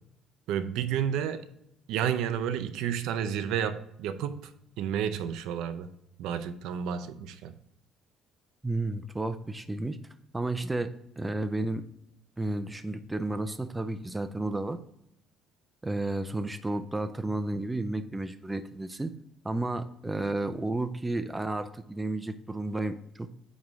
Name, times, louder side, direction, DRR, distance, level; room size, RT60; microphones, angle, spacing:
voice 1, 0.5-1.5 1.9-4.5 4.8-5.9 6.2-7.5, right 9 dB, 70° right, 0.5 m, -31 dB
voice 2, 8.6-10.0 10.3-10.9 11.2-11.8 12.4-14.8 15.8-19.1 19.4-23.3, right 2 dB, 10° right, 0.3 m, -32 dB
8.8 x 3.2 x 3.5 m
cardioid pair, 170°, 0 cm